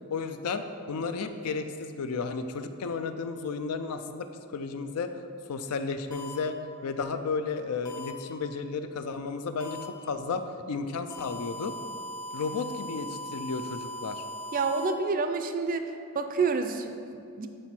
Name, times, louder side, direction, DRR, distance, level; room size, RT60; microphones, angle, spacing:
voice 1, 0.1-5.1 5.5-6.6 6.8-11.8 12.3-14.2, left 4 dB, 90° left, 9 dB, 0.4 m, -33 dB
sound 1, 6.1-6.4 7.9-8.1 9.6-9.9 11.1-14.9, left 1 dB, 20° left, 0.5 m, -39 dB
voice 2, 14.5-15.9 16.1-17.5, right 4 dB, 40° right, 8 dB, 0.4 m, -28 dB
7.8 x 4.1 x 4.3 m, 2.5 s
head